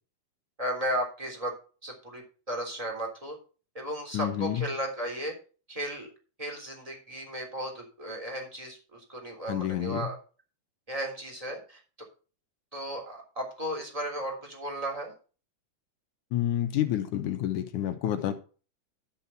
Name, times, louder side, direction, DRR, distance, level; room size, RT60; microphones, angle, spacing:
voice 1, 0.6-1.5 1.8-3.4 3.7-5.3 5.7-6.1 6.4-10.2 10.9-11.8 12.7-15.1, right 1 dB, 10° right, 3.1 m, -35 dB
voice 2, 4.1-4.6 9.5-10.1 16.3-18.3, left 11 dB, 70° left, 2.4 m, -29 dB
12.0 x 5.5 x 5.7 m
omnidirectional pair, 3.8 m